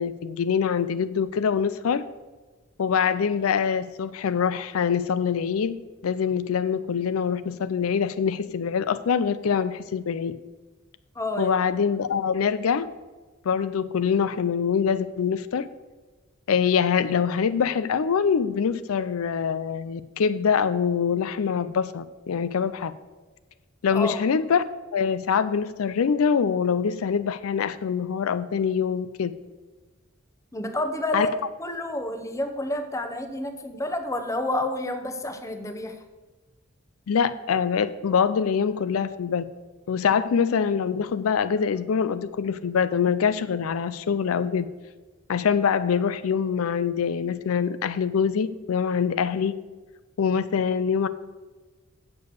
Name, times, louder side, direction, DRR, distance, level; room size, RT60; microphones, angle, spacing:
voice 1, 0.0-2.1 2.8-5.8 6.0-10.3 11.4-12.9 13.4-15.7 16.5-22.9 23.8-24.6 24.9-29.3 31.1-31.3 37.1-39.4 39.9-44.7 45.3-49.5 50.2-51.1, left 6 dB, 80° left, 13 dB, 0.4 m, -24 dB
voice 2, 11.2-11.5 23.9-24.2 30.5-31.3 31.6-36.0 40.1-40.2, left 1 dB, 15° left, 6 dB, 0.8 m, -29 dB
8.3 x 6.8 x 6.7 m, 1.3 s
head